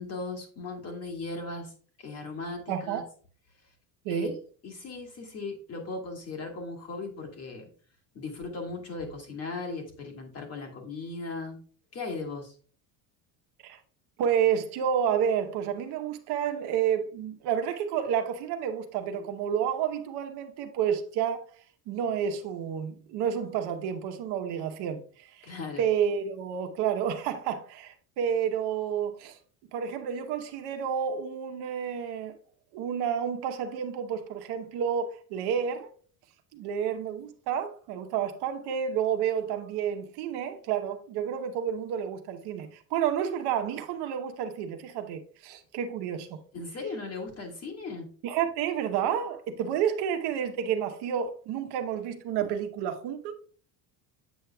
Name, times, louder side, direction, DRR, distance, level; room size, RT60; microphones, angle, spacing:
voice 1, 0.0-1.7 2.0-3.0 4.1-4.3 4.6-7.7 8.2-11.6 11.9-12.5 25.4-25.8 46.5-48.1, left 3 dB, 35° left, 1.8 m, -37 dB
voice 2, 2.7-3.0 4.0-4.4 13.6-13.8 14.2-21.4 21.9-25.5 25.8-29.4 29.7-32.4 32.7-35.9 36.5-46.4 48.2-53.3, right 8 dB, 65° right, 1.0 m, -30 dB
8.0 x 6.3 x 2.3 m
cardioid pair, 145°, 42 cm